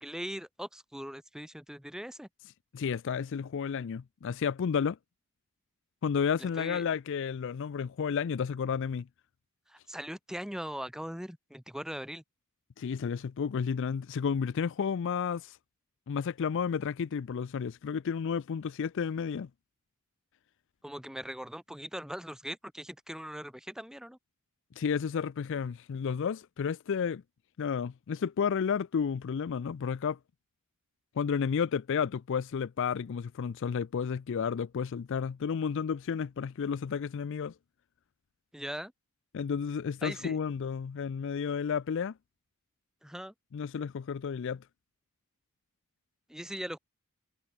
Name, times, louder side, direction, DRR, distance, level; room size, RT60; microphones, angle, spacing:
voice 1, 0.0-2.3 6.6-6.9 9.7-12.2 20.8-24.2 38.5-38.9 40.0-40.4 43.0-43.3 46.3-46.8, equal, 5° right, 1.6 m, -40 dB
voice 2, 2.7-5.0 6.0-9.1 12.8-15.6 16.1-19.5 24.8-27.2 27.6-30.2 31.2-37.5 39.3-42.1 43.5-44.6, left 6 dB, 55° left, 0.4 m, -32 dB
head